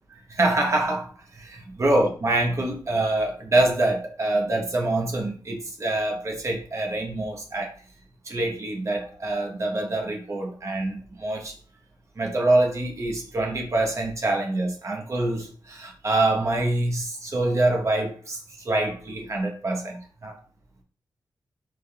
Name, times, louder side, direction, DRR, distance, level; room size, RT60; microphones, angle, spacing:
voice 1, 0.3-7.7 8.3-11.5 12.2-20.4, right 2 dB, 40° right, 1.0 m, -25 dB
6.0 x 3.4 x 2.3 m
wide cardioid pair, 170°, 8 cm